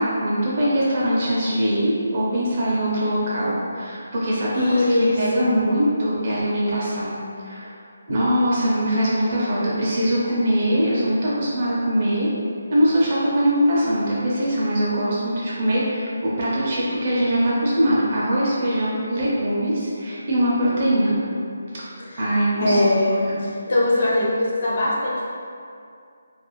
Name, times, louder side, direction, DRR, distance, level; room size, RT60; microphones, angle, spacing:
voice 1, 0.0-7.2 7.4-7.8 8.1-12.3 12.7-21.2 21.7-21.9 22.1-22.8 23.2-23.4, equal, 25° right, -7 dB, 0.4 m, -22 dB
voice 2, 4.5-5.5 22.1-22.2 22.6-25.3, left 1 dB, 35° left, -6 dB, 0.5 m, -21 dB
2.4 x 2.3 x 2.9 m, 2.3 s
hypercardioid pair, 180°, 0 cm